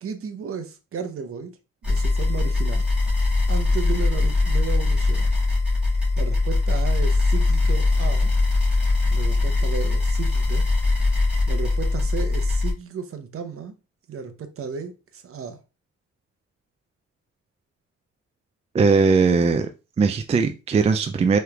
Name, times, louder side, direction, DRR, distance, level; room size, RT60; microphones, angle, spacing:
voice 1, 0.0-1.5 1.8-2.9 3.5-5.3 6.1-8.3 9.1-10.7 11.5-13.7 14.1-15.6, right 6 dB, 45° right, 0.8 m, -34 dB
sound 1, 1.8-12.7, left 3 dB, 5° right, 1.8 m, -21 dB
voice 2, 18.7-19.7 20.0-21.4, right 4 dB, 20° right, 0.3 m, -19 dB
4.9 x 3.2 x 2.3 m
cardioid pair, 90°, 30 cm